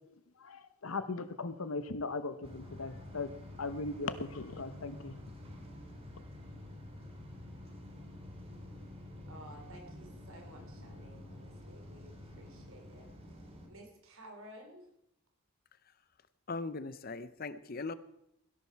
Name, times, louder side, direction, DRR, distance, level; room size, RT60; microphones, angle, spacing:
voice 1, 0.4-3.3 3.6-5.2, left 3 dB, 75° left, 12 dB, 1.0 m, -38 dB
sound 1, 2.4-13.7, left 1 dB, 25° right, 2.1 m, -49 dB
voice 2, 9.3-14.9, right 1 dB, 70° right, 3 dB, 3.2 m, -54 dB
voice 3, 16.5-17.9, left 3 dB, 40° left, 14 dB, 0.6 m, -39 dB
17.0 x 11.0 x 4.6 m, 0.80 s
head